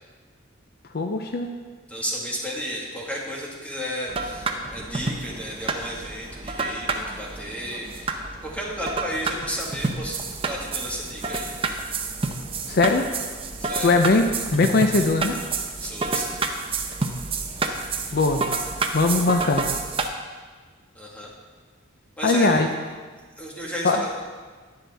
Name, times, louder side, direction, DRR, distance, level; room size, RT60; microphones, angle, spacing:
voice 1, 0.9-1.5 12.7-13.0 13.8-14.2 14.5-15.3 18.1-18.6 18.9-19.6 22.2-22.7 23.8-24.0, left 3 dB, 50° left, 4 dB, 0.5 m, -20 dB
voice 2, 1.9-10.2 10.4-11.5 13.6-14.0 15.8-16.4 20.9-21.3 22.2-22.6 23.4-24.2, equal, 5° left, -3 dB, 1.7 m, -33 dB
sound 1, 4.1-20.1, right 3 dB, 25° right, 0.7 m, -29 dB
11.0 x 10.0 x 3.4 m, 1.5 s
head